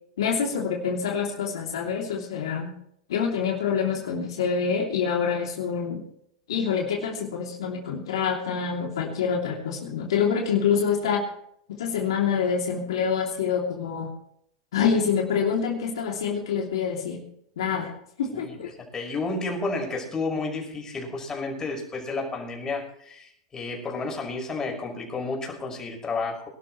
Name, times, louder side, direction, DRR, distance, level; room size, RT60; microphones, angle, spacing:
voice 1, 0.2-2.7 3.1-6.0 6.5-11.3 11.7-14.1 14.7-17.2 17.6-17.9 18.2-18.7, left 6 dB, 75° left, 0 dB, 2.9 m, -26 dB
voice 2, 18.9-26.5, left 3 dB, 20° left, 1 dB, 5.8 m, -31 dB
24.0 x 12.0 x 3.2 m, 0.70 s
hypercardioid pair, 100°, 3 cm